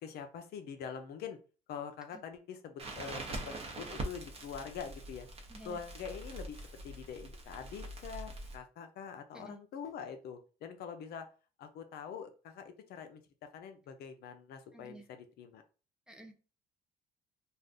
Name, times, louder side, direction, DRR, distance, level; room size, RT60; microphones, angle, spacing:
voice 1, 0.0-1.4 1.7-5.3 5.6-11.3 11.6-15.6, left 7 dB, 70° left, 7 dB, 0.6 m, -45 dB
Crackle, 2.8-8.6, right 1 dB, 35° right, 0.8 m, -43 dB
voice 2, 14.7-15.0 16.1-16.3, right 2 dB, 5° right, 3 dB, 0.6 m, -51 dB
2.6 x 2.3 x 3.5 m, 0.35 s
cardioid pair, 110°, 17 cm